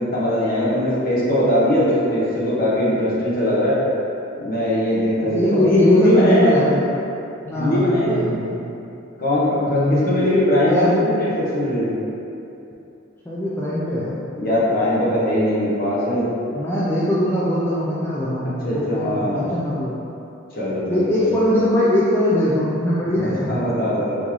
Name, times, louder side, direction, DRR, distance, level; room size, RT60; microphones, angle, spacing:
voice 1, 0.0-3.8 4.4-6.6 7.5-8.3 9.2-11.9 14.4-16.3 18.6-19.5 20.5-21.4 23.2-24.2, left 1 dB, 50° left, -8 dB, 1.1 m, -20 dB
voice 2, 5.2-6.9 7.4-8.6 9.6-11.1 13.3-14.2 16.5-20.0 20.9-23.6, equal, 10° left, -9 dB, 0.4 m, -21 dB
3.9 x 3.6 x 3.1 m, 2.8 s
head